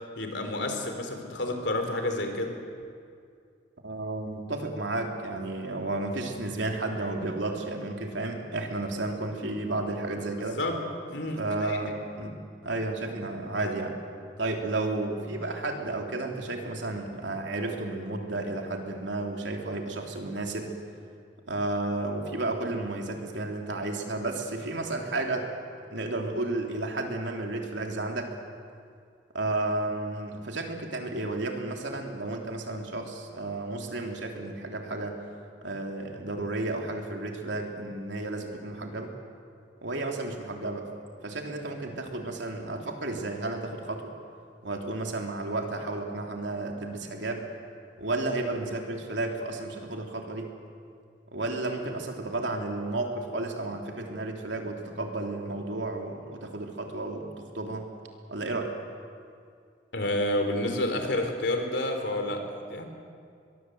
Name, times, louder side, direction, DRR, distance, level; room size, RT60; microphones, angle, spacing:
voice 1, 0.2-2.6 10.6-10.8 11.1-11.9 59.9-62.8, left 1 dB, 70° left, 5 dB, 3.4 m, -30 dB
voice 2, 3.8-10.6 11.4-14.0 14.4-20.7 21.5-25.5 25.9-28.3 29.3-35.2 35.6-39.1 39.8-40.9 41.2-44.1 44.6-47.5 48.0-50.5 51.3-57.9 58.3-58.7, right 2 dB, 75° right, 2 dB, 3.2 m, -32 dB
23.0 x 22.0 x 7.9 m, 2.3 s
head